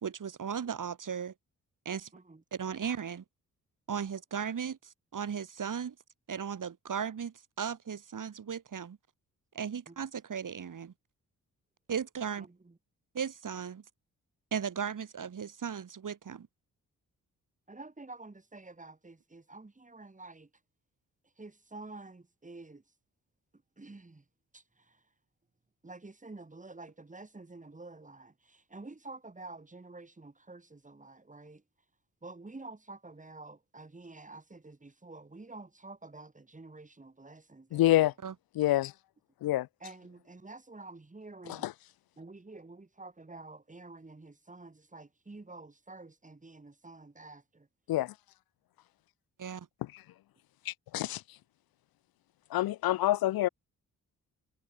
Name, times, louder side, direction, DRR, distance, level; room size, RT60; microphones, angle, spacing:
voice 1, 0.0-1.3 1.9-2.1 2.5-3.2 3.9-6.0 6.3-9.0 9.5-10.9 11.9-12.5 13.1-13.8 14.5-16.5 38.2-38.3 49.4-49.7, right 7 dB, 60° right, 3.7 m, -36 dB
voice 2, 2.1-2.4 9.9-10.0 12.4-12.8 17.7-20.5 21.4-22.8 23.8-24.2 24.5-25.0 25.8-31.6 32.2-38.1 39.8-41.7 42.2-47.7, right 3 dB, 20° right, 2.7 m, -49 dB
voice 3, 37.7-38.1 38.6-38.9 39.4-39.7 41.5-41.7 47.9-48.1 50.7-51.2 52.5-53.5, left 15 dB, 80° left, 0.7 m, -27 dB
supercardioid pair, 55°, 35 cm